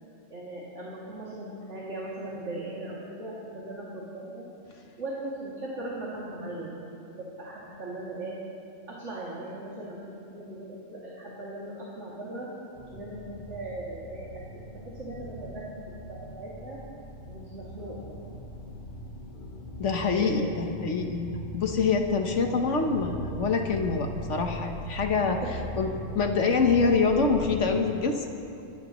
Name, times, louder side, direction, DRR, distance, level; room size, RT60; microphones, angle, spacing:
voice 1, 0.3-4.5 5.0-6.7 7.1-8.4 8.9-12.5 12.9-14.3 14.7-15.6 16.1-16.8 17.3-18.1 20.2-20.5 25.4-25.5, right 1 dB, 70° right, -7 dB, 2.8 m, -38 dB
sound 1, 12.8-27.6, equal, 45° left, 1.3 m, -40 dB
voice 2, 19.8-21.3 21.5-25.4 25.8-25.9 26.1-28.3, left 4 dB, 70° left, 3 dB, 1.4 m, -25 dB
24.5 x 15.5 x 3.1 m, 2.6 s
omnidirectional pair, 1.3 m